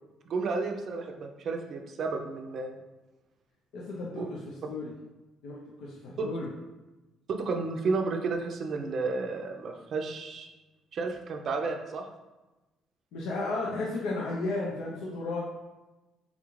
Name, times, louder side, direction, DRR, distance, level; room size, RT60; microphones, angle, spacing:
voice 1, 0.3-2.7 4.2-4.3 6.2-6.3 7.3-10.5 10.9-12.0, right 4 dB, 60° right, 4 dB, 0.4 m, -32 dB
voice 2, 3.7-4.9 5.4-6.5 13.1-15.4, left 2 dB, 75° left, -4 dB, 0.5 m, -34 dB
3.6 x 2.4 x 3.1 m, 1.1 s
supercardioid pair, 80°, 0 cm